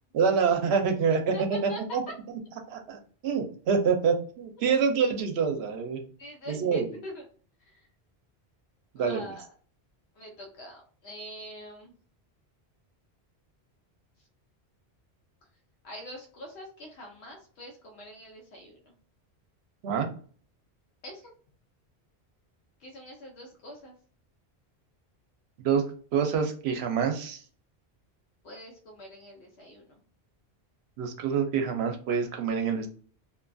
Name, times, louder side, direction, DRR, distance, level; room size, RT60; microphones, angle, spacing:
voice 1, 0.1-2.0 2.7-6.0 6.5-6.9 8.9-9.2 19.8-20.1 25.6-25.8 26.1-27.4 31.0-32.9, right 6 dB, 80° right, 5 dB, 0.8 m, -26 dB
voice 2, 1.3-2.0 6.2-7.2 7.6-7.9 9.0-9.5 10.1-11.9 15.8-18.9 21.0-21.2 22.8-23.9 28.4-30.0, equal, 80° left, 0 dB, 0.9 m, -44 dB
2.6 x 2.3 x 2.5 m, 0.43 s
omnidirectional pair, 1.1 m